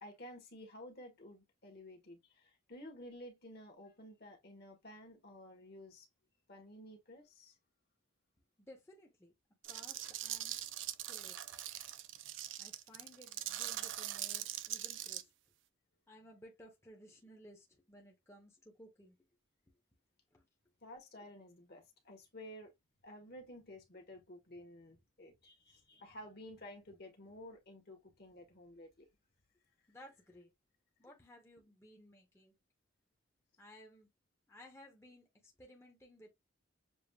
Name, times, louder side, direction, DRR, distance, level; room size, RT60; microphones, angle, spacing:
voice 1, 0.0-6.1 6.5-7.6 20.8-22.7 23.0-29.1, left 1 dB, 50° left, 1.3 m, -53 dB
voice 2, 8.7-9.3 9.7-10.5 11.1-11.4 12.6-15.3 16.1-19.1 20.3-20.5 29.9-30.5 31.0-32.5 33.6-34.1 34.5-36.3, equal, 15° left, 0.8 m, -58 dB
sound 1, 9.6-15.2, right 13 dB, 70° right, 0.5 m, -42 dB
6.9 x 2.4 x 2.2 m
head